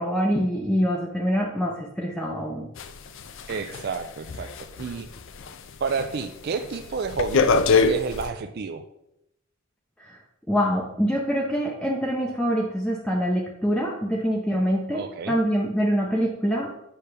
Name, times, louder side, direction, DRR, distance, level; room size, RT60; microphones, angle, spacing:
voice 1, 0.0-2.7 10.0-10.2 10.5-16.8, equal, 5° left, -2 dB, 0.5 m, -25 dB
sound 1, 2.8-5.6 5.9-6.2 6.6-8.3, left 4 dB, 60° left, 0.5 m, -24 dB
voice 2, 3.5-4.5 4.8-5.1 5.8-7.4 7.9-8.8 14.9-15.4, right 5 dB, 45° right, 8 dB, 0.3 m, -30 dB
8.5 x 5.6 x 3.3 m, 0.82 s
head